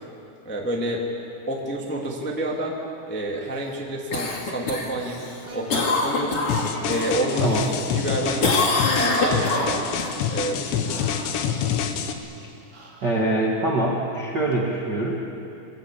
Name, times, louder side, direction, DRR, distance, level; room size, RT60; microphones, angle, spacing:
voice 1, 0.4-1.0 1.5-2.8 3.1-6.5 6.8-8.6 8.9-9.9 10.3-11.0 11.8-11.9, right 1 dB, 5° left, -1 dB, 1.2 m, -29 dB
Cough, 4.1-7.1 7.5-8.1 8.4-10.1 14.5-14.6, left 3 dB, 40° left, 2.8 m, -25 dB
sound 1, 5.4-5.9 6.4-7.1 8.2-8.7 9.3-10.1 10.8-11.3 12.7-13.2, right 1 dB, 20° right, 3.3 m, -41 dB
sound 2, 6.5-12.1, left 8 dB, 85° left, 3.4 m, -27 dB
voice 2, 13.0-15.1, right 2 dB, 40° right, -2 dB, 1.5 m, -23 dB
25.0 x 21.0 x 8.6 m, 2.8 s
omnidirectional pair, 4.9 m